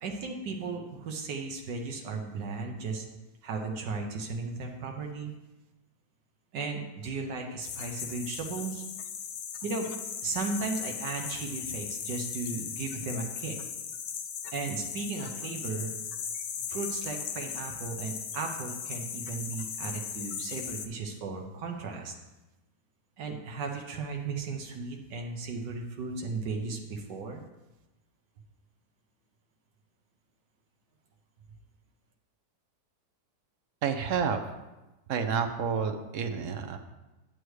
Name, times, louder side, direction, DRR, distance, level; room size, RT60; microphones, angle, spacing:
voice 1, 0.0-3.1 3.4-5.3 6.5-8.8 9.6-9.9 10.2-13.6 14.5-15.9 16.7-22.1 23.2-27.4, right 4 dB, 90° right, 2 dB, 1.5 m, -35 dB
sound 1, 7.6-20.9, left 7 dB, 70° left, 1.0 m, -38 dB
voice 2, 33.8-34.4 35.1-36.8, right 6 dB, 60° right, 7 dB, 0.9 m, -29 dB
9.1 x 8.3 x 3.2 m, 1.0 s
omnidirectional pair, 1.8 m